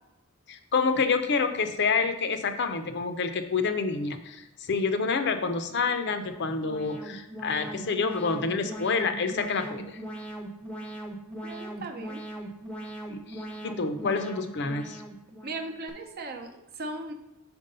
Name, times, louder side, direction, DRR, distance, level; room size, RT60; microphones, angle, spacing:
voice 1, 0.5-10.0 13.1-15.0, left 4 dB, 55° left, 8 dB, 0.5 m, -28 dB
Alarm, 6.0-15.9, right 1 dB, 5° left, 0.7 m, -40 dB
voice 2, 11.4-12.2 15.4-17.1, right 2 dB, 45° right, 5 dB, 0.7 m, -37 dB
5.2 x 4.6 x 5.4 m, 0.94 s
head